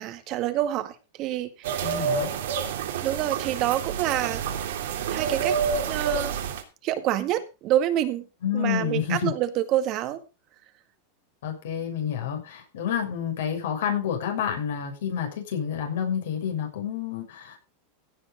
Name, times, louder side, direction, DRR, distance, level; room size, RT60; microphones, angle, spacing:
voice 1, 0.0-2.1 3.0-4.4 5.1-5.6 5.9-6.3 6.8-8.3 8.5-10.2, right 12 dB, 45° right, 9 dB, 1.8 m, -27 dB
sound 1, 1.6-6.6, right 6 dB, 80° right, 2.9 m, -28 dB
voice 2, 1.8-2.3 8.4-9.3 11.4-17.7, left 8 dB, 80° left, 3 dB, 6.5 m, -29 dB
16.0 x 7.1 x 5.1 m, 0.29 s
hypercardioid pair, 120°, 0 cm